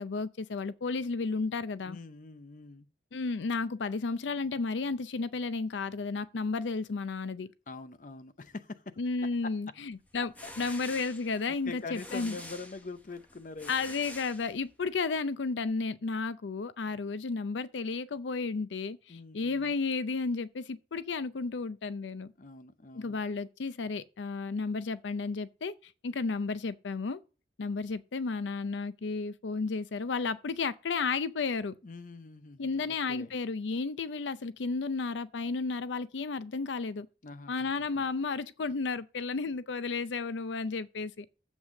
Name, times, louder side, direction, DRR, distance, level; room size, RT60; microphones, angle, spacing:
voice 1, 0.0-2.0 3.1-7.5 9.0-12.4 13.7-22.3 23.0-27.2 27.6-31.7 32.6-37.1 37.5-41.3, left 4 dB, 90° left, 0.5 m, -33 dB
voice 2, 1.9-2.9 7.7-9.0 9.4-9.5 10.4-10.8 11.6-14.0 19.1-19.7 22.4-23.2 31.8-33.3 37.2-38.0, left 3 dB, 45° left, 0.6 m, -44 dB
sound 1, 10.1-14.9, left 1 dB, 10° left, 0.8 m, -47 dB
7.5 x 6.0 x 6.4 m
head